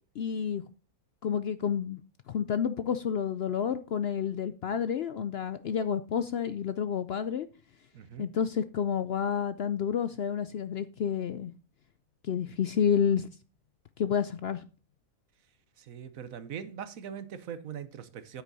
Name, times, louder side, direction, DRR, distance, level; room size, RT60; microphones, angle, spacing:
voice 1, 0.2-0.6 1.2-2.0 2.3-7.5 8.2-11.5 12.3-13.3 14.0-14.6, left 7 dB, 60° left, 0.7 m, -29 dB
voice 2, 7.9-8.3 15.8-18.4, right 8 dB, 70° right, 1.3 m, -41 dB
9.5 x 8.3 x 4.0 m
omnidirectional pair, 1.5 m